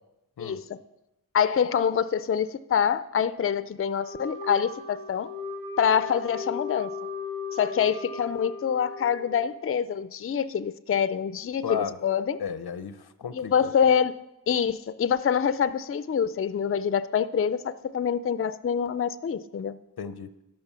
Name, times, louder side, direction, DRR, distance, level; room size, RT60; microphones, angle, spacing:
voice 1, 1.3-5.3 5.8-6.9 7.5-12.4 13.3-14.1 14.5-19.7, left 7 dB, 40° left, 15 dB, 0.4 m, -25 dB
Wind instrument woodwind instrument, 3.9-9.6, left 4 dB, 85° right, 2.8 m, -37 dB
voice 2, 11.6-12.0 12.4-13.7 20.0-20.3, left 7 dB, 85° left, 12 dB, 0.6 m, -34 dB
12.5 x 5.3 x 5.6 m, 0.91 s
wide cardioid pair, 55°, 37 cm